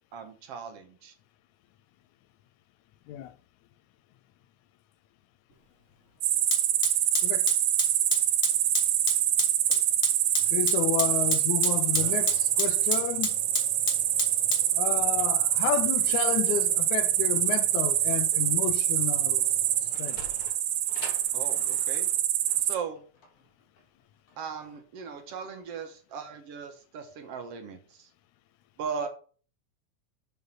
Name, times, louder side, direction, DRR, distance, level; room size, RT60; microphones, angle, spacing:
voice 1, 0.1-1.1 21.3-22.1 22.6-23.0 24.4-28.1 28.8-29.1, right 6 dB, 60° right, 2.0 m, -38 dB
Fire, 5.5-5.6 6.5-20.5, left 2 dB, 30° left, 2.4 m, -34 dB
sound 1, 6.2-22.8, right 12 dB, 90° right, 2.2 m, -25 dB
voice 2, 10.5-13.4 14.8-19.5 20.0-20.2, left 12 dB, 85° left, 2.1 m, -31 dB
Sliding door, 19.7-24.8, left 4 dB, 50° left, 2.3 m, -48 dB
7.9 x 5.5 x 5.6 m
omnidirectional pair, 3.3 m